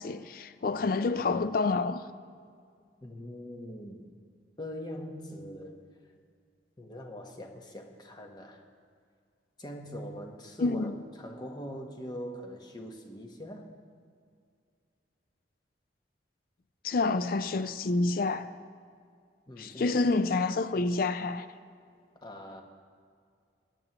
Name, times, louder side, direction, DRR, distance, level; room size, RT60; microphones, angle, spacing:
voice 1, 0.0-2.0 10.6-10.9 16.8-18.5 19.6-21.5, left 3 dB, 50° left, 0.4 m, -28 dB
voice 2, 3.0-4.1 4.6-5.9 6.8-8.6 9.6-13.7 19.5-20.2 22.2-22.6, equal, 25° left, 1.0 m, -42 dB
19.0 x 11.0 x 3.0 m
head